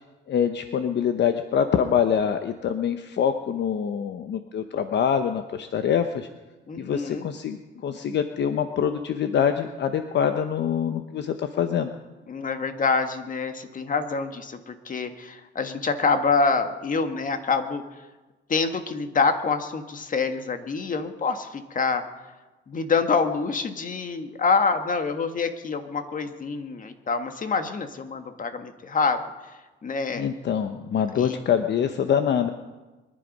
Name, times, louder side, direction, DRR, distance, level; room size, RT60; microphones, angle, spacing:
voice 1, 0.3-6.3 6.8-11.9 30.1-32.5, left 8 dB, 60° left, 8 dB, 1.0 m, -25 dB
voice 2, 6.7-7.3 12.3-17.8 18.5-22.0 22.7-29.2 29.8-30.3 31.1-31.4, left 4 dB, 40° left, 8 dB, 1.7 m, -26 dB
23.5 x 11.0 x 5.4 m, 1.2 s
cardioid pair, 90°, 20 cm